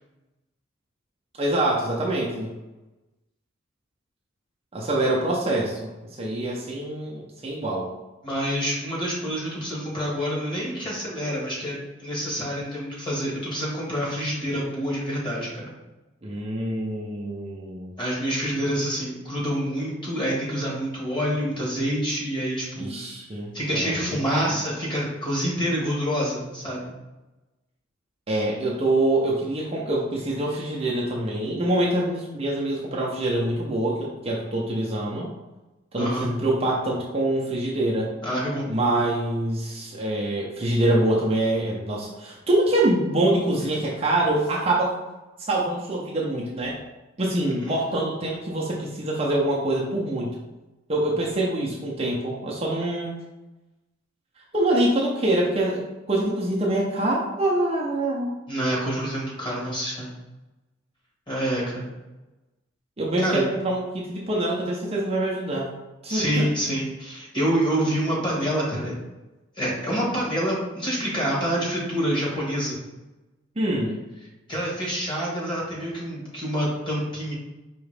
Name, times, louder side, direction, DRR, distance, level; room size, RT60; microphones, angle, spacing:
voice 1, 1.4-2.5 4.7-7.9 16.2-17.9 22.8-24.2 28.3-35.3 35.9-38.1 38.7-44.9 45.4-46.8 47.2-50.3 50.9-53.1 54.5-55.8 56.1-58.4 63.0-65.7 66.0-66.5 73.6-74.0, right 1 dB, 30° right, -4 dB, 0.6 m, -25 dB
voice 2, 8.2-15.7 18.0-23.0 23.5-26.9 36.0-36.3 38.2-38.7 47.4-47.8 58.5-60.1 61.3-61.9 63.2-63.5 66.1-68.9 69.6-72.8 74.5-77.3, equal, 25° left, -5 dB, 1.4 m, -27 dB
4.7 x 3.0 x 3.3 m, 1.1 s
head